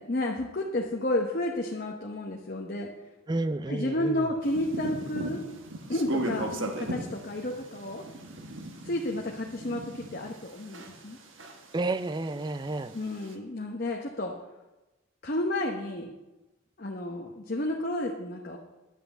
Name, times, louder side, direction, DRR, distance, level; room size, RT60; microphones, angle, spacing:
voice 1, 0.0-2.9 3.7-5.4 5.9-8.0 8.8-11.2 12.9-14.3 15.2-16.1 16.8-18.6, left 1 dB, 45° left, 0 dB, 0.9 m, -31 dB
voice 2, 3.3-4.3 11.7-13.0, right 2 dB, 20° right, 13 dB, 0.4 m, -31 dB
sound 1, 4.4-11.1 11.4-13.3, right 1 dB, 70° right, 1.4 m, -37 dB
10.0 x 5.7 x 8.1 m, 1.1 s
head